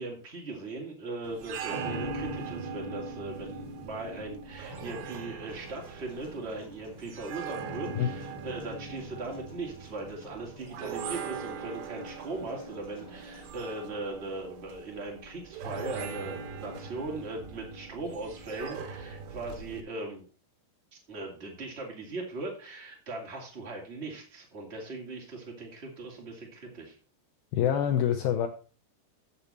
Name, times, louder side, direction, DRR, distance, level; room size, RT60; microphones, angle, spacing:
voice 1, 0.0-20.2 21.1-27.0, right 2 dB, 20° right, -1 dB, 2.0 m, -39 dB
sound 1, 1.2-19.8, right 4 dB, 80° right, 3.6 m, -40 dB
Human voice / Acoustic guitar, 5.5-13.5, equal, 50° left, 0.7 m, -56 dB
voice 2, 27.5-28.5, left 9 dB, 85° left, 6 dB, 2.2 m, -25 dB
10.5 x 6.8 x 4.3 m, 0.37 s
omnidirectional pair, 5.1 m